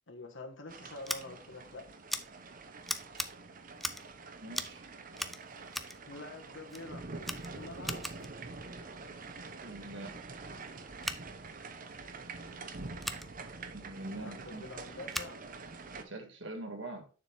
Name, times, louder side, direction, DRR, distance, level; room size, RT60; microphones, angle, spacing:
voice 1, 0.1-1.8 6.0-7.0 7.3-8.1 14.2-15.4, left 2 dB, 85° left, 4 dB, 1.5 m, -46 dB
sound 1, 0.7-16.0, right 3 dB, 45° right, 0.8 m, -46 dB
Scissors, 1.0-1.2 2.1-2.2 2.8-3.3 3.8-4.1 4.5-4.8 5.1-6.0 6.7-6.8 7.2-8.3 11.0-11.2 13.0-13.2 15.1-15.3, equal, ahead, 0.5 m, -38 dB
voice 2, 4.3-4.9 9.6-10.2 13.7-14.7 16.0-17.1, right 2 dB, 75° right, 3 dB, 1.7 m, -43 dB
6.9 x 6.8 x 3.5 m, 0.36 s
head